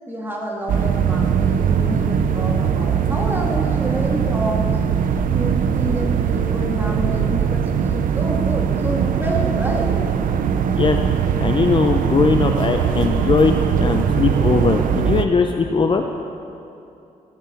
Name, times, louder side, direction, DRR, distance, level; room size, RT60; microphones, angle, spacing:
voice 1, 0.1-4.7 5.3-10.0, right 1 dB, 15° right, -2 dB, 2.3 m, -28 dB
sound 1, 0.7-15.3, right 7 dB, 70° right, 0.6 m, -20 dB
voice 2, 11.4-16.0, left 4 dB, 35° left, 4 dB, 0.6 m, -19 dB
14.5 x 6.8 x 7.1 m, 2.7 s
cardioid pair, 100°, 15 cm